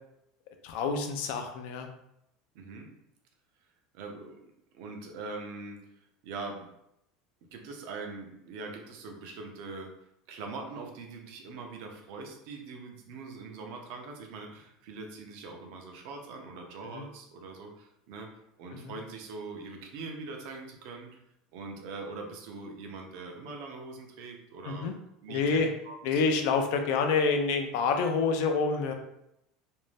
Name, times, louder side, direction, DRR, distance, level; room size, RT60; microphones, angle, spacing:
voice 1, 0.6-1.9 16.9-17.0 18.7-18.9 24.6-24.9 25.3-25.7 26.0-28.9, left 4 dB, 65° left, 5 dB, 0.4 m, -27 dB
voice 2, 2.5-2.9 3.9-4.4 4.7-5.9 6.2-6.7 7.5-9.9 10.3-18.3 18.6-21.2 21.5-24.9 25.2-26.2, right 3 dB, 60° right, 2 dB, 0.6 m, -42 dB
2.6 x 2.1 x 3.2 m, 0.81 s
supercardioid pair, 155°, 0 cm